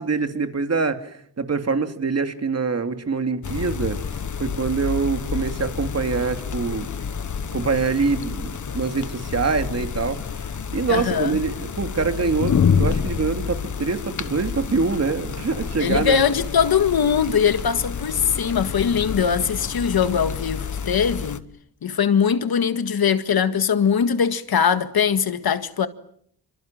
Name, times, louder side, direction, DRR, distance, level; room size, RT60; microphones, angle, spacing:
voice 1, 0.0-4.0 4.4-6.9 7.5-10.2 10.7-16.2, right 4 dB, 40° right, 2.7 m, -24 dB
sound 1, 3.4-21.4, left 6 dB, 45° left, 1.5 m, -28 dB
voice 2, 10.9-11.4 15.8-21.5 21.8-25.9, left 7 dB, 65° left, 1.9 m, -21 dB
29.0 x 25.5 x 7.5 m
wide cardioid pair, 140°, 40 cm